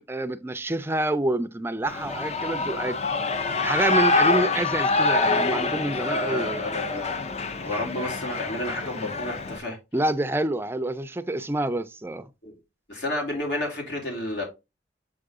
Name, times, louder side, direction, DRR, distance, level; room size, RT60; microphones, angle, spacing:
voice 1, 0.0-3.0 3.6-6.6 9.9-12.3, right 1 dB, 15° right, 0.4 m, -27 dB
Shout / Cheering, 1.9-9.6, left 3 dB, 40° left, 0.5 m, -26 dB
voice 2, 6.0-7.1 7.6-9.8 12.4-12.6 12.9-14.4, left 1 dB, 70° left, 2.9 m, -31 dB
7.1 x 3.9 x 3.6 m
head